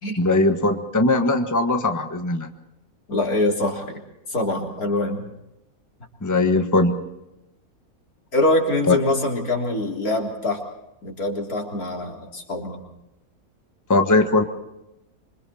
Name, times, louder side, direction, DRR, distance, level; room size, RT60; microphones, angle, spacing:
voice 1, 0.2-2.5 6.2-7.0 8.9-9.0 13.9-14.4, left 2 dB, 10° left, 6 dB, 1.4 m, -19 dB
voice 2, 3.1-3.9 4.3-5.2 8.3-10.6 11.0-12.8, left 2 dB, 75° left, 1 dB, 4.0 m, -24 dB
26.5 x 25.0 x 4.3 m, 0.91 s
omnidirectional pair, 1.6 m